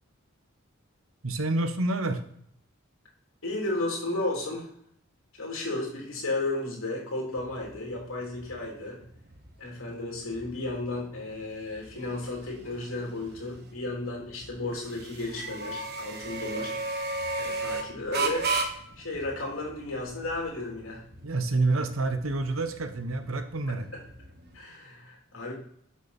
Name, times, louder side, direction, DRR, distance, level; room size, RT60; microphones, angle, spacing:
voice 1, 1.2-2.2 21.2-23.9, right 2 dB, 75° right, 9 dB, 1.0 m, -28 dB
voice 2, 3.4-4.7 5.4-9.0 9.6-16.7 17.4-18.5 19.0-21.0 23.7-24.0 24.5-25.5, left 2 dB, 75° left, -1 dB, 3.3 m, -33 dB
sound 1, 7.4-24.6, right 3 dB, 50° right, 1.3 m, -37 dB
11.0 x 5.9 x 4.2 m, 0.67 s
head